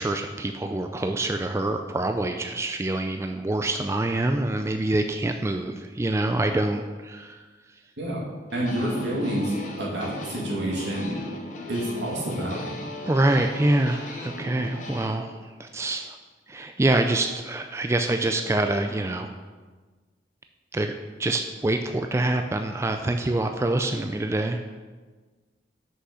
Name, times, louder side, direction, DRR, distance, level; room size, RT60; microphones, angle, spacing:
voice 1, 0.0-7.4 13.1-15.3 15.6-16.2 16.5-19.3 20.7-24.6, right 2 dB, 15° right, 6 dB, 0.3 m, -25 dB
voice 2, 8.0-11.2 11.7-12.8, right 1 dB, 80° right, -4 dB, 2.4 m, -29 dB
sound 1, 8.5-15.1, left 1 dB, 45° left, 1.0 m, -37 dB
6.3 x 5.6 x 6.3 m, 1.4 s
head